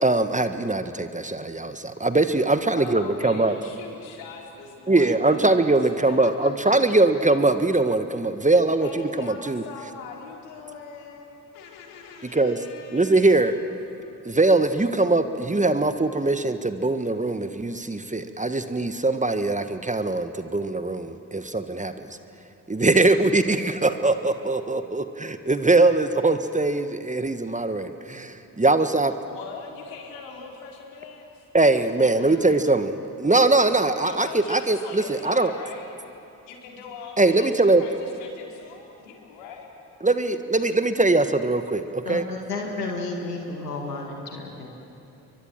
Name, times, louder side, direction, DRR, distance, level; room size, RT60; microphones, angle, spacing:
voice 1, 0.0-3.5 4.9-9.6 12.3-12.6 12.9-13.5 14.2-22.2 22.7-29.1 31.5-35.5 37.2-37.8 40.0-42.2, right 2 dB, 15° right, 9 dB, 1.5 m, -22 dB
voice 2, 2.8-5.7 6.1-7.3 8.8-13.5 29.3-31.5 31.8-32.6 34.0-35.9 36.5-39.7, left 6 dB, 70° left, 0 dB, 3.9 m, -41 dB
voice 3, 42.1-44.7, left 3 dB, 90° left, 1 dB, 2.0 m, -32 dB
29.5 x 23.0 x 7.6 m, 2.8 s
figure-of-eight pair, 40°, 45 cm